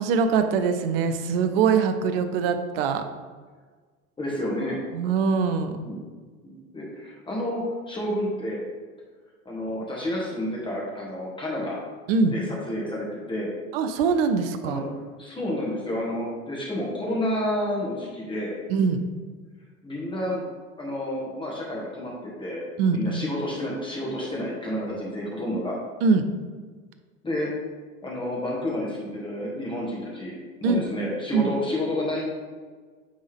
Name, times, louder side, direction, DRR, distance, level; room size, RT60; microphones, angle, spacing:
voice 1, 0.0-3.0 4.9-5.8 12.1-12.3 13.7-14.8 18.7-19.0 22.8-23.2 26.0-26.2 30.6-30.9 31.3-31.5, right 5 dB, 45° right, 8 dB, 0.6 m, -23 dB
voice 2, 4.2-4.8 5.8-6.1 6.4-8.6 9.4-11.8 12.3-13.5 14.6-14.8 15.2-18.5 19.8-20.4 20.8-22.6 22.9-25.7 27.2-27.5 28.0-30.3 30.6-32.2, left 1 dB, 10° left, -4 dB, 1.2 m, -30 dB
8.8 x 3.5 x 3.4 m, 1.5 s
figure-of-eight pair, 85°, 43 cm